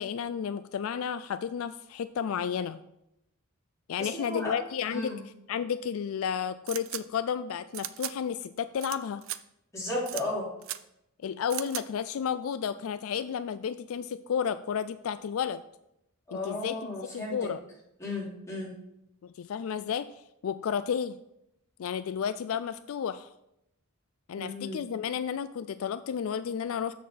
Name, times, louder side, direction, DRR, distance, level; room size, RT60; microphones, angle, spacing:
voice 1, 0.0-2.8 3.9-5.1 5.5-9.2 11.2-15.6 16.3-17.6 19.2-20.1 20.4-21.2 21.8-23.3 24.3-26.9, left 7 dB, 70° left, 13 dB, 0.3 m, -32 dB
voice 2, 4.0-4.5 4.9-5.2 9.7-10.5 16.3-17.5 18.0-18.7 24.4-24.8, left 2 dB, 15° left, -7 dB, 3.7 m, -34 dB
sound 1, 6.7-7.0 7.7-8.1 8.8-9.0 9.2-9.4 10.1-10.2 10.6-10.8 11.5-11.8, right 14 dB, 60° right, 0.5 m, -36 dB
7.3 x 6.4 x 5.7 m, 0.83 s
head